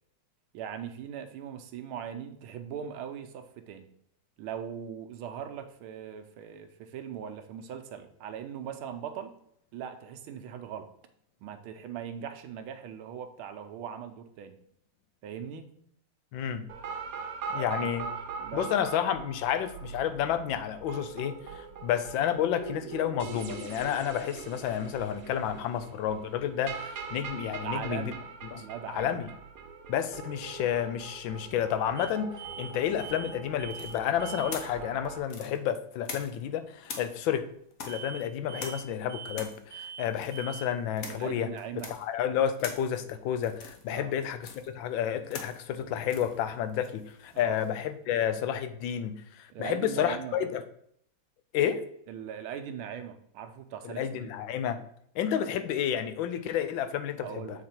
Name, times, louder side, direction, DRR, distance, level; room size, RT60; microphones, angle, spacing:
voice 1, 0.5-3.9 4.4-9.3 9.7-10.9 11.4-14.6 15.2-15.7 17.6-17.9 18.4-18.7 27.6-28.2 28.6-29.2 41.1-41.9 43.9-44.2 47.3-47.6 49.5-50.3 52.1-54.3 57.2-57.7, right 8 dB, 80° right, 8 dB, 1.5 m, -40 dB
voice 2, 16.3-16.6 17.5-18.1 18.5-28.1 28.5-28.6 28.9-29.3 29.9-32.3 32.6-37.4 37.8-41.5 41.9-50.6 51.5-51.8 53.8-54.8 55.1-57.6, left 9 dB, 75° left, 11 dB, 1.2 m, -30 dB
sound 1, 16.7-35.2, right 5 dB, 60° right, 0.9 m, -41 dB
sound 2, 32.0-32.1 32.4-32.7 33.0-33.3 33.6-33.9 34.2-34.6 37.9-38.2 38.5-38.8 39.1-39.4 39.7-40.1 40.3-40.6, right 7 dB, 15° right, 0.7 m, -43 dB
sound 3, 33.7-36.5 36.8-47.8, left 4 dB, 55° left, 1.1 m, -45 dB
7.5 x 4.1 x 4.3 m, 0.68 s
omnidirectional pair, 2.4 m